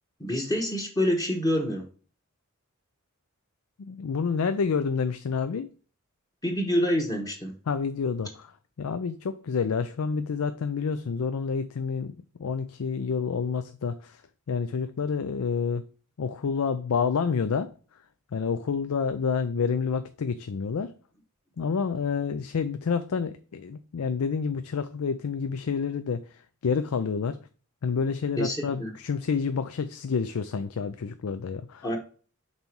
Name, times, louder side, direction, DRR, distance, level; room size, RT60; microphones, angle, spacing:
voice 1, 0.2-1.8 6.4-7.5 28.4-28.9 31.8-32.0, equal, 15° left, 1 dB, 1.0 m, -27 dB
voice 2, 3.8-5.7 7.7-8.5 8.8-12.1 12.4-14.2 14.5-15.8 16.2-17.7 18.3-20.9 21.6-27.4 27.8-32.0, left 5 dB, 85° left, 10 dB, 0.5 m, -28 dB
5.4 x 4.1 x 4.4 m, 0.40 s
head